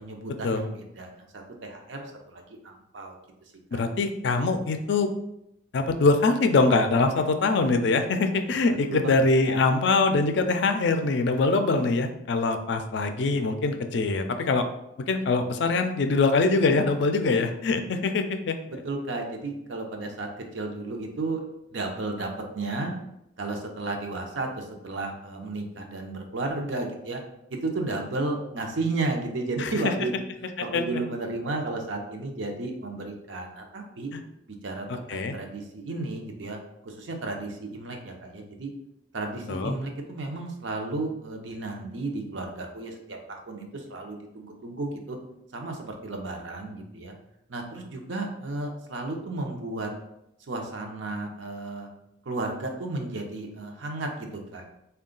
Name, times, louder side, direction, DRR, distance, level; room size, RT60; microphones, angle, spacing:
voice 1, 0.0-3.2 3.7-3.8 8.7-9.1 9.4-9.6 18.7-22.9 23.4-27.2 27.5-30.1 30.6-34.1 34.6-38.7 39.1-45.2 45.5-47.1 47.5-49.9 50.5-51.9 52.2-54.7, right 2 dB, 75° right, 2 dB, 0.6 m, -33 dB
voice 2, 3.7-5.1 5.7-14.7 15.1-18.6 29.6-29.9 30.7-30.8 34.1-34.2 35.1-35.3 39.5-39.8, left 3 dB, 65° left, 7 dB, 0.4 m, -23 dB
3.7 x 2.3 x 3.8 m, 0.82 s
head